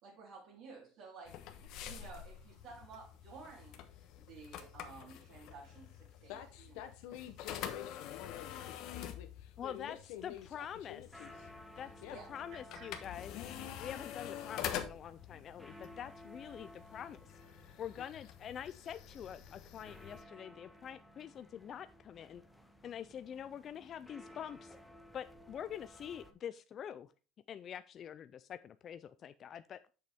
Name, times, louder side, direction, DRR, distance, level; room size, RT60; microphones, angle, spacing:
voice 1, 0.0-6.4 6.7-6.8 12.1-12.3 12.7-12.9, right 4 dB, 50° right, 3.5 m, -53 dB
sound 1, 1.3-20.2, left 10 dB, 50° left, 1.1 m, -47 dB
voice 2, 6.3-11.5 12.0-12.2 18.0-18.1, left 11 dB, 70° left, 0.8 m, -49 dB
voice 3, 9.6-10.0 10.2-11.0 11.8-11.9 12.3-13.3 13.8-17.2 17.8-22.4 22.8-24.8 25.1-27.1 27.5-29.8, left 9 dB, 30° left, 0.3 m, -45 dB
sound 2, 10.6-26.3, left 1 dB, ahead, 0.7 m, -57 dB
8.0 x 6.7 x 3.4 m
cardioid pair, 175°, 0 cm